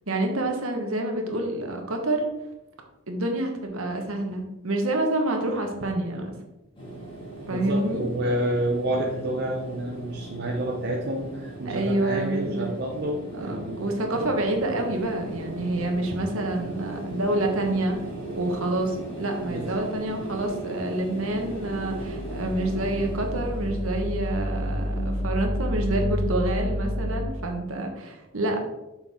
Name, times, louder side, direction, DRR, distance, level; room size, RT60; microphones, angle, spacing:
voice 1, 0.1-2.2 3.1-6.3 7.5-8.0 11.6-12.7 13.3-18.0 18.3-28.6, right 1 dB, 70° right, 3 dB, 1.3 m, -28 dB
sound 1, 6.7-25.4, right 1 dB, 25° left, 1.9 m, -38 dB
voice 2, 7.5-13.9 19.4-19.7, right 1 dB, 50° right, 0 dB, 0.7 m, -29 dB
sound 2, 21.2-27.2, equal, 45° left, 1.0 m, -29 dB
6.9 x 5.6 x 3.6 m, 0.98 s
head